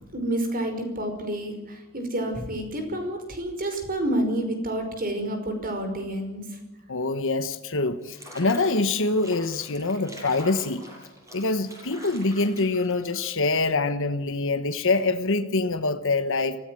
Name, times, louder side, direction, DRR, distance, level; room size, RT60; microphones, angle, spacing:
voice 1, 0.1-6.4, right 1 dB, 40° right, 6 dB, 5.4 m, -29 dB
voice 2, 6.9-10.8 11.3-16.6, left 3 dB, 60° left, 8 dB, 1.3 m, -25 dB
Water / Bathtub (filling or washing), 8.0-13.5, equal, 15° right, 7.6 m, -45 dB
24.0 x 16.5 x 7.8 m, 1.1 s
head